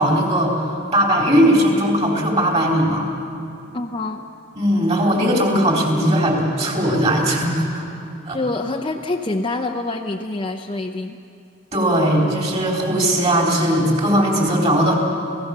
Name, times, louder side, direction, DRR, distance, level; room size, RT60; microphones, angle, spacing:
voice 1, 0.0-3.1 4.6-7.8 8.3-8.4 11.7-15.0, equal, 35° right, -1 dB, 4.1 m, -18 dB
voice 2, 3.7-4.2 8.3-11.2, left 2 dB, 25° left, 2 dB, 0.7 m, -26 dB
29.0 x 16.5 x 6.8 m, 2.5 s
head